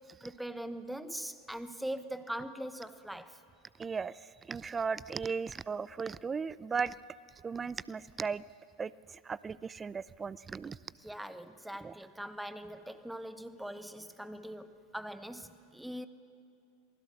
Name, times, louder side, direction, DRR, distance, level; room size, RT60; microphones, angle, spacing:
voice 1, 0.2-3.4 11.0-16.1, right 1 dB, ahead, 12 dB, 1.0 m, -41 dB
voice 2, 3.8-4.2 4.5-6.9 7.4-8.4 8.8-10.8 11.8-11.9, right 5 dB, 20° right, 20 dB, 0.5 m, -36 dB
27.5 x 20.0 x 6.5 m, 2.6 s
hypercardioid pair, 85°, 0 cm